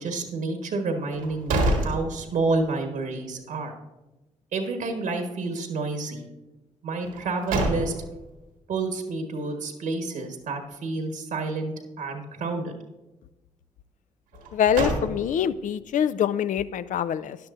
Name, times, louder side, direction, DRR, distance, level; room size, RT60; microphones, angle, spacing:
voice 1, 0.0-3.7 4.5-6.3 6.8-7.9 8.7-12.7, right 3 dB, 70° right, 4 dB, 1.3 m, -29 dB
sound 1, 1.1-2.7 3.1-3.2 7.0-8.3 14.3-15.6, right 2 dB, 85° right, 1.7 m, -28 dB
voice 2, 14.5-17.4, left 9 dB, 65° left, 14 dB, 0.5 m, -25 dB
12.5 x 10.5 x 2.6 m, 1.0 s
hypercardioid pair, 40°, 14 cm